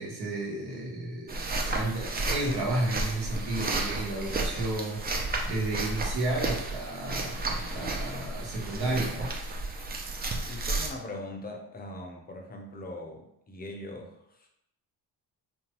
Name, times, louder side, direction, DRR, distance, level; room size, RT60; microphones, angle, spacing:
voice 1, 0.0-9.3, right 2 dB, 75° right, -3 dB, 1.2 m, -32 dB
sound 1, 1.3-10.9, right 2 dB, 25° right, 0.5 m, -32 dB
voice 2, 10.5-14.5, left 1 dB, 25° left, 2 dB, 0.6 m, -41 dB
5.3 x 2.3 x 2.9 m, 0.80 s
wide cardioid pair, 140°, 40 cm